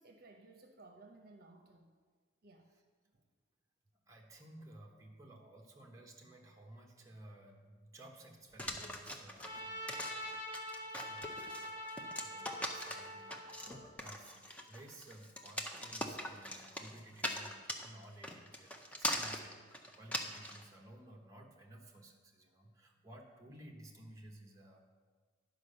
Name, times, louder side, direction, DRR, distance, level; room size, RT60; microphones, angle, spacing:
voice 1, 0.0-1.9 2.4-2.7 3.1-3.3, right 2 dB, 50° right, 4 dB, 0.8 m, -58 dB
voice 2, 4.1-24.8, right 1 dB, 15° right, 0 dB, 1.0 m, -56 dB
sound 1, 8.6-20.6, equal, 5° left, 0.5 m, -41 dB
Trumpet, 9.4-13.8, equal, 65° left, 1.8 m, -45 dB
10.5 x 4.9 x 6.5 m, 1.5 s
head